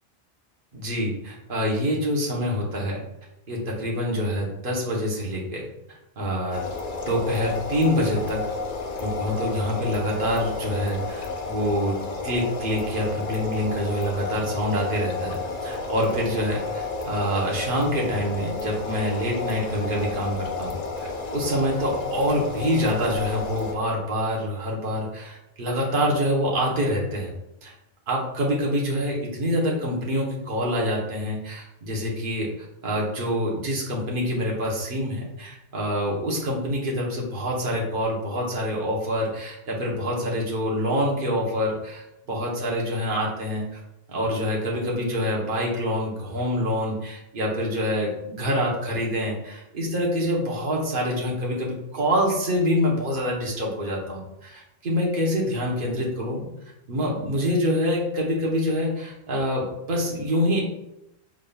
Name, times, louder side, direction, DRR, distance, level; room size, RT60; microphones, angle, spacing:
voice 1, 0.7-3.0 3.5-5.7 6.2-6.6 7.0-8.4 9.0-12.0 12.2-27.3 27.6-27.7 28.1-32.5 32.8-43.6 44.1-56.5 56.9-60.6, equal, 55° right, -2 dB, 1.2 m, -26 dB
sound 1, 6.5-23.7, left 3 dB, 55° left, 0.5 m, -32 dB
5.1 x 3.7 x 2.3 m, 0.85 s
omnidirectional pair, 1.1 m